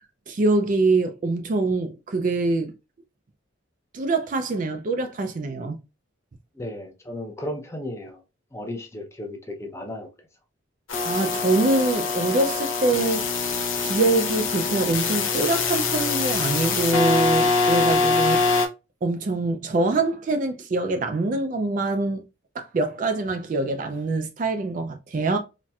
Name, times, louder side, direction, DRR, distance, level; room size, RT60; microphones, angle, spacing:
voice 1, 0.3-2.7 3.9-5.8 11.0-13.2 13.8-18.6 19.0-22.2 22.6-25.4, right 2 dB, 40° right, 0.3 m, -24 dB
voice 2, 6.5-8.2 8.5-10.1, left 1 dB, 15° left, 0.5 m, -34 dB
sound 1, 10.9-18.7, left 4 dB, 70° left, 0.7 m, -24 dB
4.1 x 2.1 x 2.3 m
head